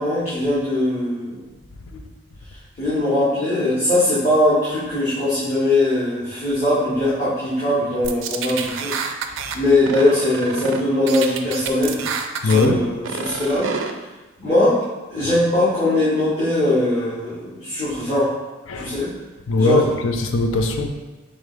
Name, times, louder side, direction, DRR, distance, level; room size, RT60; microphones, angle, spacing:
voice 1, 0.0-1.4 1.9-2.0 2.8-9.0 9.5-12.0 12.4-13.7 14.4-14.8 15.1-18.3 18.7-19.1 19.6-19.9, left 1 dB, 35° left, -12 dB, 1.2 m, -20 dB
sound 1, 8.0-9.6 9.9-10.8 11.1-12.7 13.0-13.9, right 6 dB, 80° right, 0.4 m, -28 dB
voice 2, 12.4-12.8 18.7-19.0 19.5-20.9, left 3 dB, 90° left, 5 dB, 0.5 m, -20 dB
4.8 x 4.0 x 2.5 m, 1.1 s
head